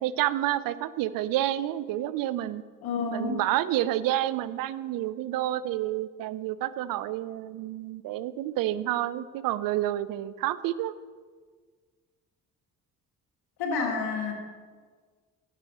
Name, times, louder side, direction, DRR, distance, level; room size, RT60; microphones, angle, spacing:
voice 1, 0.0-2.6 3.1-10.9, right 13 dB, 55° right, 15 dB, 0.6 m, -29 dB
voice 2, 2.8-3.4 13.6-14.3, left 4 dB, 60° left, 2 dB, 1.9 m, -29 dB
11.0 x 7.4 x 4.2 m, 1.5 s
figure-of-eight pair, 45°, 42 cm